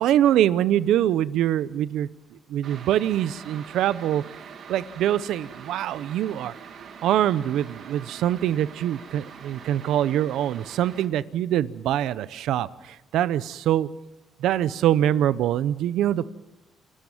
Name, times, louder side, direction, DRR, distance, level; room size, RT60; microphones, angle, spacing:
voice 1, 0.0-2.1 2.5-4.2 4.7-6.5 7.0-12.7 13.1-13.9 14.4-16.2, right 11 dB, 85° right, 17 dB, 0.7 m, -24 dB
sound 1, 2.6-11.1, right 6 dB, 65° right, 2.4 m, -44 dB
29.0 x 14.0 x 7.2 m, 1.0 s
cardioid pair, 90°, 0 cm